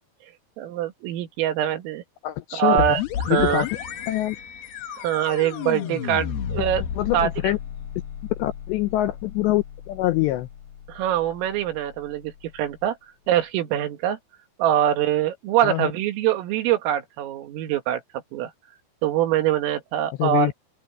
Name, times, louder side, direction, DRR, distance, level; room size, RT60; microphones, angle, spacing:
voice 1, 0.6-2.0 2.5-3.0 3.3-3.6 5.0-6.8 7.1-7.3 10.9-13.0 13.3-14.2 14.6-18.0 18.3-18.5 19.0-20.5, right 11 dB, 85° right, 4.6 m, -23 dB
voice 2, 2.2-3.0 3.3-3.7 4.1-4.4 7.0-7.6 8.4-10.5 15.6-15.9 20.2-20.5, left 16 dB, 80° left, 2.6 m, -24 dB
sound 1, 2.8-12.3, left 8 dB, 60° left, 3.4 m, -33 dB
open air
omnidirectional pair, 5.8 m